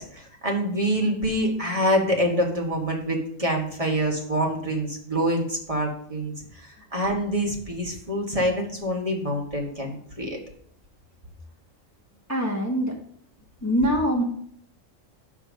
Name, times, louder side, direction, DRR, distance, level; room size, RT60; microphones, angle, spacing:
voice 1, 0.0-10.4, equal, 25° right, 0 dB, 1.5 m, -26 dB
voice 2, 12.3-13.0 13.6-14.2, equal, 15° left, -1 dB, 1.0 m, -23 dB
9.8 x 3.6 x 6.3 m, 0.63 s
omnidirectional pair, 1.4 m